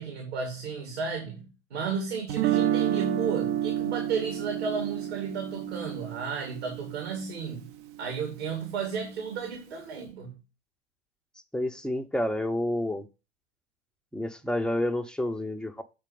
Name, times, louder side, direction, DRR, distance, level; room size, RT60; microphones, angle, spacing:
voice 1, 0.0-7.7 8.0-10.4, right 5 dB, 65° right, 2.4 m, -33 dB
Guitar, 2.3-8.3, right 11 dB, 40° right, 0.6 m, -30 dB
voice 2, 11.5-13.1 14.1-15.8, left 1 dB, ahead, 0.6 m, -29 dB
7.7 x 4.4 x 5.1 m
figure-of-eight pair, 85°, 35 cm